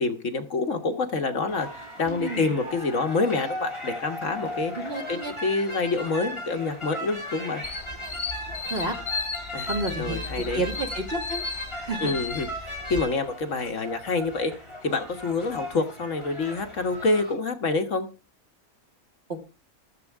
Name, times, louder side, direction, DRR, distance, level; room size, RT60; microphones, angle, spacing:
voice 1, 0.0-7.6 9.5-10.6 12.0-14.5 14.8-18.1, left 3 dB, 60° left, 5 dB, 1.5 m, -27 dB
sound 1, 1.5-17.3, equal, 20° left, 8.1 m, -37 dB
voice 2, 2.1-2.5 4.7-5.3 8.7-9.0 9.7-11.4 11.8-12.1, right 2 dB, 45° right, 2 dB, 2.2 m, -31 dB
sound 2, 7.6-13.0, left 5 dB, 35° left, 1.7 m, -35 dB
14.5 x 12.0 x 3.5 m, 0.33 s
omnidirectional pair, 1.5 m